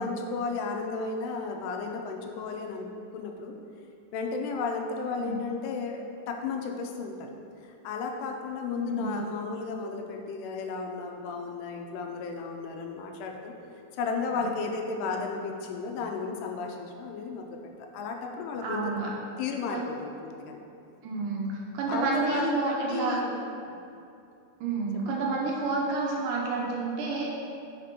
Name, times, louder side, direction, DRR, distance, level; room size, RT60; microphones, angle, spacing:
voice 1, 0.0-3.5 4.1-7.3 7.6-13.5 13.9-18.8 19.4-20.6 21.9-23.4 25.1-25.2, left 4 dB, 85° left, 2 dB, 2.7 m, -33 dB
voice 2, 8.8-9.3 14.3-14.5 18.6-19.1 19.7-19.8 21.0-23.2 24.6-27.3, right 3 dB, 85° right, -3 dB, 1.8 m, -30 dB
5.9 x 5.0 x 5.9 m, 2.6 s
omnidirectional pair, 4.7 m